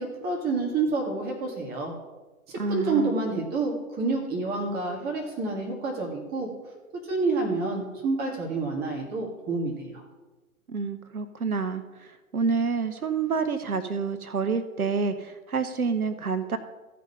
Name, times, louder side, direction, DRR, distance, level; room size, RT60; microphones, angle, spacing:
voice 1, 0.0-1.9 2.5-6.5 7.1-10.0, right 3 dB, 20° right, 0 dB, 2.0 m, -28 dB
voice 2, 2.6-3.2 10.7-16.6, right 5 dB, 75° right, 10 dB, 1.0 m, -28 dB
14.5 x 5.3 x 5.6 m, 1.2 s
figure-of-eight pair, 115°, 44 cm